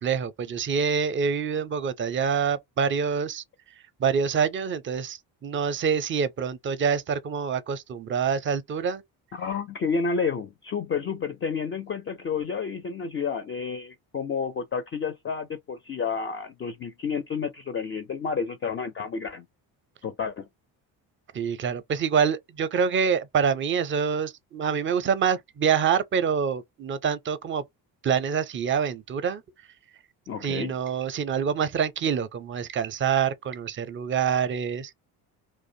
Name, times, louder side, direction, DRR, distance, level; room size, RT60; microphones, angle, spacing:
voice 1, 0.0-3.4 4.0-9.0 21.3-27.6 28.0-29.4 30.4-34.9, right 7 dB, 30° right, 0.5 m, -26 dB
voice 2, 9.3-19.5 20.0-20.5 30.3-30.8, left 5 dB, 30° left, 0.4 m, -30 dB
2.5 x 2.1 x 2.7 m
supercardioid pair, 75°, 44 cm